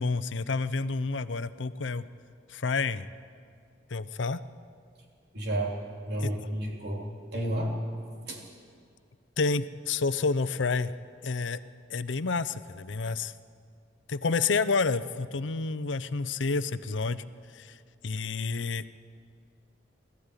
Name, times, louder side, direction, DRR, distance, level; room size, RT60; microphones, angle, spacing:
voice 1, 0.0-2.0 2.5-3.1 3.9-4.4 6.2-6.3 9.4-10.9 11.2-11.6 11.9-13.3 14.1-17.2 17.5-17.8 18.0-18.8, left 4 dB, 85° left, 14 dB, 0.7 m, -29 dB
voice 2, 5.3-5.7 6.1-7.0 7.3-7.7 8.3-8.4, right 1 dB, 60° right, 0 dB, 3.3 m, -31 dB
19.5 x 14.0 x 9.8 m, 2.2 s
head